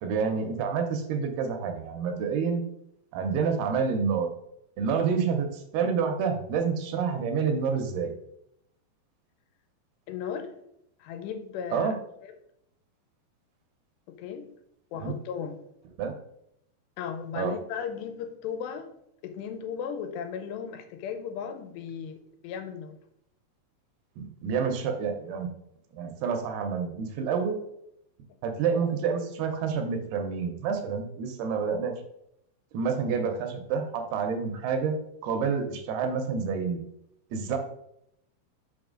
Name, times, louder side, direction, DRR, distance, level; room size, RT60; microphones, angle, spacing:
voice 1, 0.0-2.6 3.1-4.3 4.8-8.1 11.7-12.0 15.0-15.2 16.0-16.2 17.3-17.6 24.2-25.5 25.9-27.6 28.4-31.9 32.7-36.8 37.3-37.6, right 6 dB, 80° right, 5 dB, 2.6 m, -28 dB
voice 2, 10.1-10.5 11.0-11.9 12.2-12.3 14.1-14.5 14.9-15.6 17.0-18.9 19.2-23.0, left 7 dB, 90° left, 8 dB, 2.8 m, -36 dB
6.2 x 5.7 x 3.7 m, 0.76 s
omnidirectional pair, 4.9 m